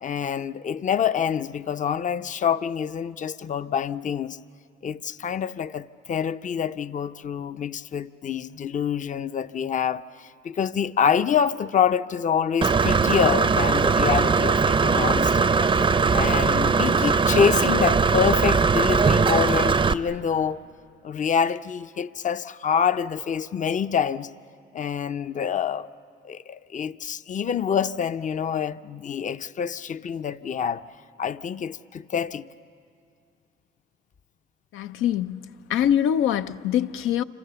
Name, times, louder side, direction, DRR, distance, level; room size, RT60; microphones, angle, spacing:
voice 1, 0.0-4.4 4.8-15.5 15.7-15.8 16.1-20.6 21.0-24.3 24.7-25.9 26.2-30.8 31.2-32.5, left 7 dB, 40° left, 0.6 m, -26 dB
Engine / Mechanisms, 12.6-19.9, right 5 dB, 25° right, 0.5 m, -20 dB
voice 2, 34.7-37.2, left 10 dB, 90° left, 0.6 m, -24 dB
28.0 x 26.0 x 6.9 m
cardioid pair, 90°, 20 cm